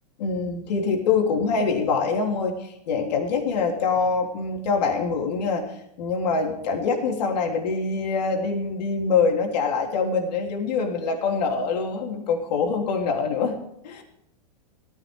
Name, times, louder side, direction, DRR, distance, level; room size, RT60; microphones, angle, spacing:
voice 1, 0.2-5.6 6.0-13.5 13.8-14.0, left 4 dB, 75° left, 1 dB, 3.3 m, -24 dB
18.0 x 15.0 x 3.6 m, 0.80 s
hypercardioid pair, 130°, 21 cm